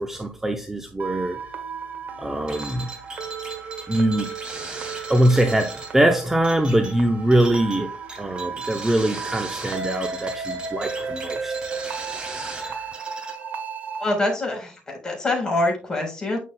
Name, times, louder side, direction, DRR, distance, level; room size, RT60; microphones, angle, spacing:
voice 1, 0.0-1.4 2.2-2.9 3.9-4.3 5.1-7.9 8.2-11.5, right 1 dB, 10° right, 5 dB, 0.7 m, -22 dB
sound 1, 1.0-14.1, right 5 dB, 55° right, 1.6 m, -34 dB
sound 2, 2.5-13.3, right 3 dB, 25° right, 2.8 m, -38 dB
voice 2, 14.0-16.4, left 2 dB, 20° left, 0 dB, 4.2 m, -25 dB
9.1 x 6.4 x 2.3 m, 0.34 s
cardioid pair, 105°, 4 cm